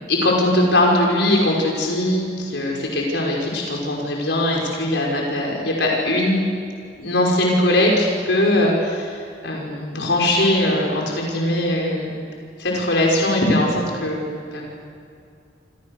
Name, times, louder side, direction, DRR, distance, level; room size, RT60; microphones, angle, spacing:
voice 1, 0.1-6.4 7.0-12.2 12.6-14.2 14.5-14.6, left 1 dB, 75° left, -1 dB, 5.5 m, -20 dB
29.5 x 26.5 x 6.8 m, 2.3 s
head